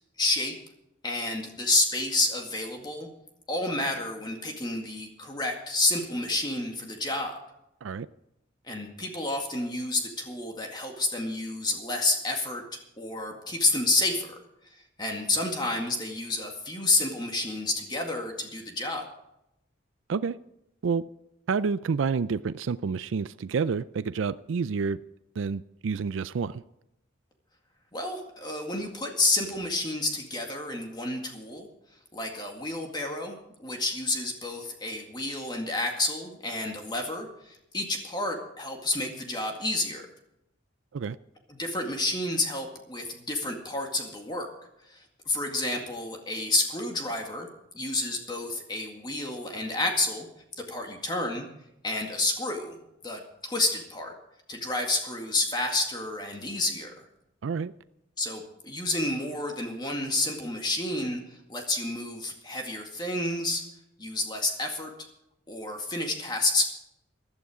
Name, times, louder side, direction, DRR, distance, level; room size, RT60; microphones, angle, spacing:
voice 1, 0.2-0.6 1.0-3.1 3.5-7.4 8.6-14.4 14.7-19.1 27.9-31.7 32.1-40.1 41.5-44.5 44.9-47.5 47.7-50.3 50.6-51.5 51.8-52.8 53.0-54.1 54.5-56.9 58.2-63.6 64.0-64.9 65.5-66.6, left 2 dB, 25° left, 2 dB, 2.0 m, -30 dB
voice 2, 21.5-25.0 25.4-26.6 40.9-41.2 57.4-57.7, right 5 dB, 85° right, 15 dB, 0.4 m, -29 dB
15.5 x 12.0 x 4.9 m, 0.82 s
head